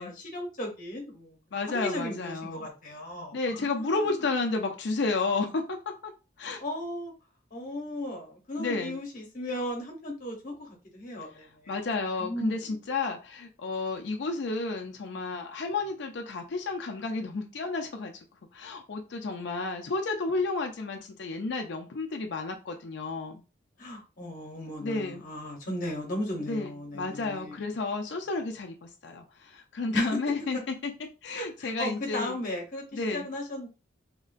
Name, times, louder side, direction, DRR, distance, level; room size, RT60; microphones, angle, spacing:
voice 1, 0.0-1.4 1.7-4.2 6.6-7.1 7.5-11.7 12.2-12.8 23.8-27.6 29.9-30.2 31.3-33.7, left 1 dB, 45° left, 0.9 m, -36 dB
voice 2, 1.5-2.7 3.3-6.1 6.4-6.6 8.6-9.0 11.7-18.1 18.5-23.4 24.8-25.2 26.4-30.9 31.2-32.4 32.9-33.3, left 3 dB, 60° left, 0.4 m, -32 dB
2.9 x 2.4 x 2.5 m
head